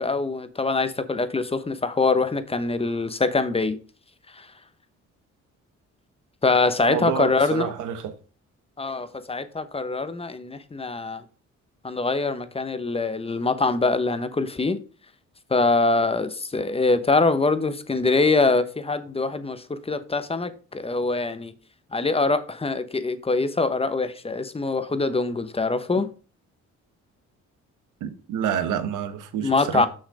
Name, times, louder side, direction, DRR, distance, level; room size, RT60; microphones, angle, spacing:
voice 1, 0.0-3.8 4.3-4.5 6.4-7.7 8.8-11.2 11.8-14.8 15.5-21.5 21.9-26.1 29.4-29.9, left 3 dB, 20° left, 1.0 m, -24 dB
voice 2, 6.9-8.2 28.0-29.9, right 8 dB, 90° right, 1.2 m, -28 dB
6.4 x 6.3 x 4.9 m
cardioid pair, 90°, 30 cm